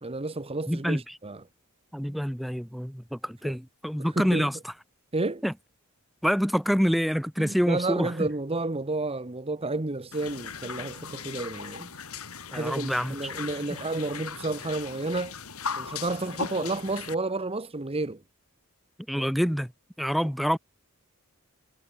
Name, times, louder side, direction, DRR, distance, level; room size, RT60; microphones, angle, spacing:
voice 1, 0.0-1.4 3.4-3.5 4.0-4.5 5.1-5.4 7.4-11.9 12.5-15.4 15.8-18.2 19.2-19.3, right 2 dB, 25° right, 1.1 m, -31 dB
voice 2, 0.7-1.2 1.9-4.7 5.4-5.5 6.2-8.3 12.5-13.1 19.1-19.7 20.0-20.6, equal, ahead, 1.5 m, -27 dB
sound 1, 10.1-17.1, left 6 dB, 80° left, 4.3 m, -38 dB
head